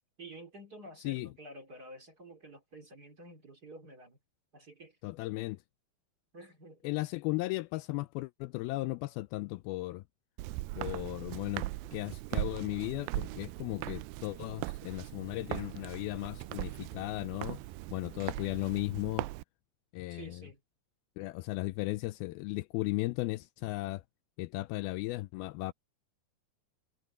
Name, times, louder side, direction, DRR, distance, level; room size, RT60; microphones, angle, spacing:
voice 1, 0.2-4.2 4.5-5.0 6.3-6.9 20.1-20.6, right 1 dB, 25° right, 3.0 m, -50 dB
voice 2, 5.0-5.6 6.8-10.0 10.8-17.6 17.9-19.3 19.9-20.5 21.2-24.0 24.4-25.7, left 20 dB, 80° left, 2.3 m, -36 dB
Walk footsteps, 10.4-19.4, right 19 dB, 80° right, 2.2 m, -39 dB
omnidirectional pair, 4.5 m